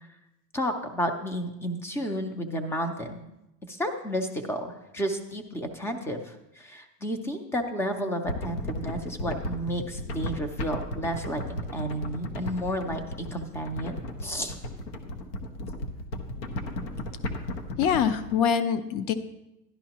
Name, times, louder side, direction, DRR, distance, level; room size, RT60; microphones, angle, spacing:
voice 1, 0.5-3.2 3.7-14.6, equal, 5° left, 7 dB, 0.4 m, -32 dB
sound 1, 8.3-18.4, left 1 dB, 80° left, 1.3 m, -35 dB
voice 2, 17.8-19.1, left 7 dB, 45° left, 13 dB, 0.7 m, -24 dB
12.0 x 11.0 x 2.9 m, 0.90 s
supercardioid pair, 135°, 49 cm